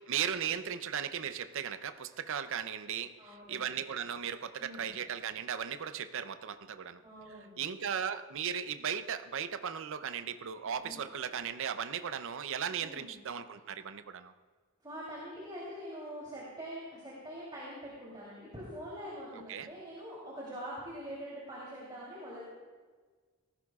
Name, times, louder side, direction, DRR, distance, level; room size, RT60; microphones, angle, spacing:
voice 1, 0.1-7.0 7.6-14.3 19.5-19.7, right 8 dB, 65° right, 10 dB, 0.6 m, -37 dB
voice 2, 3.2-3.8 4.6-5.0 7.0-7.7 10.8-11.0 12.8-13.1 14.8-22.4, equal, 20° right, -6 dB, 3.1 m, -44 dB
18.5 x 15.0 x 2.4 m, 1.5 s
head